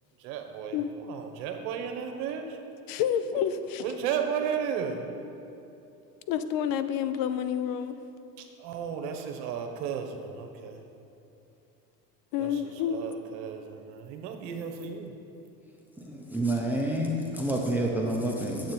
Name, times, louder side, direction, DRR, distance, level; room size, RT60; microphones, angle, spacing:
voice 1, 0.2-2.6 3.3-3.4 3.8-5.1 8.4-10.8 12.4-15.1, right 7 dB, 55° right, 4 dB, 1.3 m, -34 dB
voice 2, 2.9-3.8 6.3-8.0 12.3-13.0, left 9 dB, 45° left, 11 dB, 0.7 m, -29 dB
voice 3, 16.0-18.7, right 1 dB, 5° right, -1 dB, 1.0 m, -28 dB
9.2 x 8.0 x 4.5 m, 2.9 s
hypercardioid pair, 80°, 48 cm